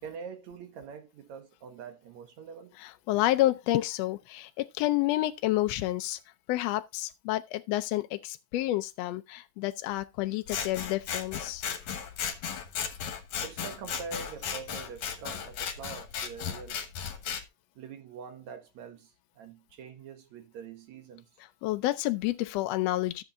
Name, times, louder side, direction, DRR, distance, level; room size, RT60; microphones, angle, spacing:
voice 1, 0.0-2.7 13.4-16.8 17.8-21.2, right 6 dB, 65° right, 2.6 m, -44 dB
voice 2, 2.8-6.2 6.5-11.6 21.6-23.2, left 16 dB, 85° left, 1.5 m, -29 dB
Scissors, 10.5-17.4, left 7 dB, 65° left, 2.2 m, -36 dB
13.5 x 7.1 x 2.6 m
omnidirectional pair, 3.6 m